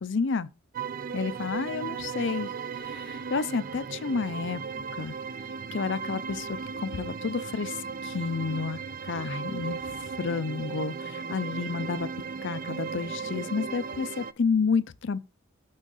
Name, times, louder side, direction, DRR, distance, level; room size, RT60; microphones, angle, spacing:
voice 1, 0.0-0.5 1.1-2.5 2.8-4.6 5.0-5.2 5.7-7.8 8.0-8.8 9.0-12.1 12.4-15.2, left 5 dB, 65° left, 0.5 m, -30 dB
sound 1, 0.7-14.3, right 5 dB, 45° right, 0.4 m, -36 dB
6.4 x 6.3 x 3.9 m
head